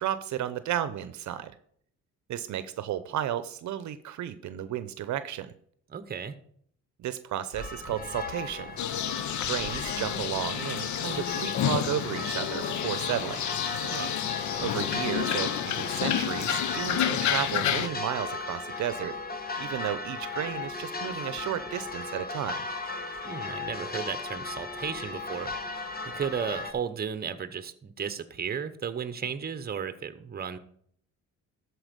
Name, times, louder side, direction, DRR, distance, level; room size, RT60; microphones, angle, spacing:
voice 1, 0.0-1.5 2.3-5.5 7.0-8.8 9.4-13.4 14.6-19.1 19.6-22.6, right 11 dB, 70° right, 13 dB, 0.7 m, -33 dB
voice 2, 5.9-6.4 13.8-14.2 23.2-25.5 26.1-30.6, right 7 dB, 30° right, 12 dB, 0.9 m, -34 dB
sound 1, 7.5-26.7, left 3 dB, 30° left, 1.2 m, -36 dB
sound 2, 8.8-17.9, left 10 dB, 70° left, 0.7 m, -30 dB
12.5 x 4.6 x 5.2 m, 0.63 s
cardioid pair, 90°, 30 cm